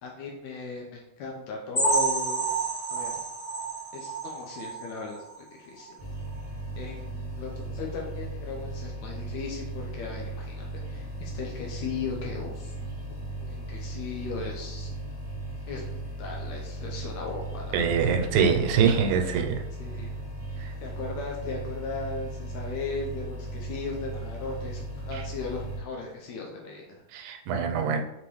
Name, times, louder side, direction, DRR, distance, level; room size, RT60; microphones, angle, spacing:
voice 1, 0.0-2.5 2.9-3.1 3.9-6.0 6.8-12.7 13.4-14.9 15.7-18.3 18.9-19.3 19.8-20.1 20.6-27.0, left 4 dB, 75° left, 0 dB, 1.8 m, -37 dB
sound 1, 1.7-5.4 5.8-5.9 6.3-6.4 6.9-7.0, right 3 dB, 60° left, 0.4 m, -29 dB
sound 2, 6.0-25.8, right 2 dB, 55° right, 0.6 m, -37 dB
voice 2, 17.7-19.6 20.6-20.7 27.1-28.0, right 6 dB, 90° right, 5 dB, 2.1 m, -24 dB
5.3 x 2.9 x 3.1 m, 0.90 s
omnidirectional pair, 3.5 m